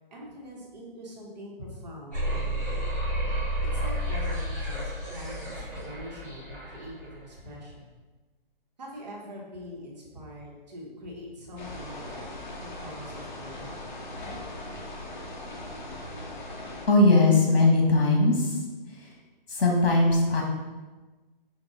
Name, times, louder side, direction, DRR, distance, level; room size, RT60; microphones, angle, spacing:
voice 1, 0.1-2.9 3.7-7.9 8.8-13.9, equal, 45° right, -3 dB, 1.1 m, -43 dB
sound 1, 2.1-7.2, equal, 20° left, 0.8 m, -31 dB
sound 2, 11.6-16.9, left 1 dB, 50° left, 0.8 m, -39 dB
voice 2, 16.9-18.6 19.0-19.1 19.5-20.4, left 2 dB, 90° left, -1 dB, 1.1 m, -20 dB
5.3 x 2.3 x 3.6 m, 1.3 s
hypercardioid pair, 180°, 29 cm